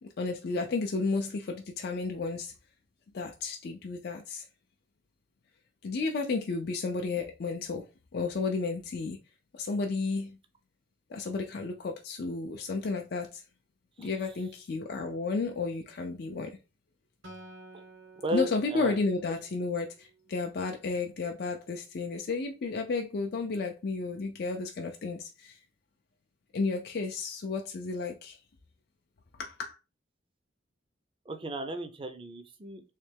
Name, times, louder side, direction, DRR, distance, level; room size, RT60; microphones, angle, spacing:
voice 1, 0.0-2.5 3.1-4.4 5.8-9.2 9.5-10.4 11.1-13.4 14.0-16.6 18.3-25.6 26.5-28.4 29.4-29.8, left 4 dB, 55° left, 0.4 m, -32 dB
Acoustic guitar, 17.2-20.7, right 2 dB, 85° right, 1.1 m, -52 dB
voice 2, 18.2-19.0 31.3-32.8, right 2 dB, 25° right, 0.5 m, -35 dB
3.2 x 3.0 x 3.3 m
head